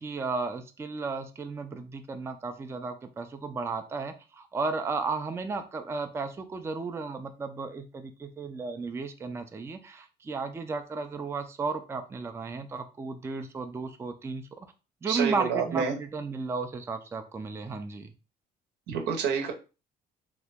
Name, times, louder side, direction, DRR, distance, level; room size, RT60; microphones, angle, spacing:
voice 1, 0.0-14.5 15.0-18.1, right 4 dB, 15° right, 7 dB, 0.4 m, -34 dB
voice 2, 15.1-15.9 18.9-19.5, right 6 dB, 85° right, 2 dB, 0.8 m, -28 dB
2.9 x 2.2 x 3.4 m, 0.32 s
cardioid pair, 110°, 17 cm